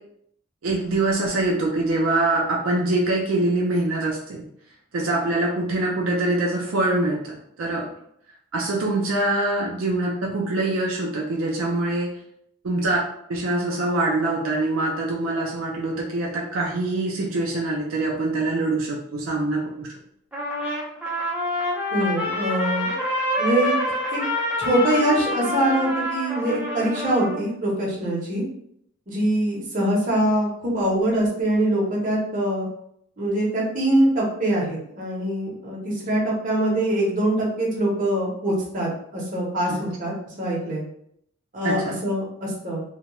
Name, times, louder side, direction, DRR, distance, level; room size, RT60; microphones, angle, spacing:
voice 1, 0.6-4.4 4.9-7.9 8.5-12.1 12.6-13.0 13.3-19.9 39.7-39.8 41.6-41.9, right 2 dB, 75° right, -2 dB, 0.5 m, -24 dB
Trumpet, 20.3-27.4, left 1 dB, 5° right, 0.5 m, -27 dB
voice 2, 21.9-22.9 23.4-23.7 24.1-24.2 24.6-28.4 29.1-32.7 33.2-40.1 40.4-40.8 41.5-42.8, right 1 dB, 40° right, -4 dB, 0.7 m, -23 dB
2.2 x 2.1 x 2.9 m, 0.72 s
head